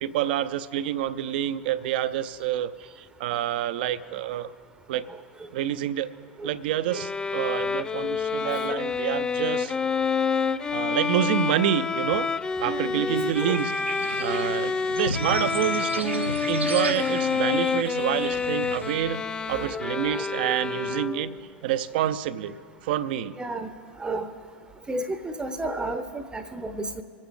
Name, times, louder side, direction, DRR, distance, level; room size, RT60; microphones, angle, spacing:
voice 1, 0.0-4.5 4.9-5.1 5.5-6.1 6.4-9.7 10.7-12.3 12.6-13.7 14.2-19.2 19.5-21.3 21.6-22.5 22.8-23.3, right 11 dB, 50° right, 14 dB, 0.6 m, -27 dB
Bowed string instrument, 6.9-21.4, left 5 dB, 10° left, 0.3 m, -28 dB
voice 2, 12.6-13.6 17.5-18.4 19.5-20.6 23.4-23.7 24.0-24.3 24.9-27.0, right 2 dB, 10° right, 10 dB, 0.8 m, -34 dB
sound 1, 13.1-19.0, right 1 dB, 80° right, 1.3 m, -35 dB
25.5 x 9.1 x 3.7 m, 2.2 s
figure-of-eight pair, 90°, 6 cm